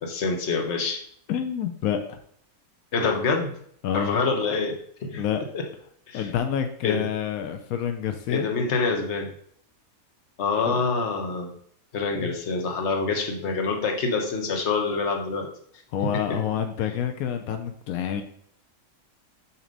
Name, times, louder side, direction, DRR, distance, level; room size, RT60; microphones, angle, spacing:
voice 1, 0.0-1.0 2.9-3.5 3.9-5.2 5.5-5.6 6.1-6.3 6.8-7.1 8.3-9.3 10.4-11.5 11.9-15.5, left 4 dB, 55° left, 2 dB, 1.3 m, -26 dB
voice 2, 1.3-2.2 3.8-4.2 5.2-5.4 6.1-8.5 10.7-10.8 12.2-12.3 15.9-18.2, left 9 dB, 85° left, 6 dB, 1.1 m, -28 dB
6.8 x 3.0 x 5.2 m, 0.64 s
omnidirectional pair, 1.5 m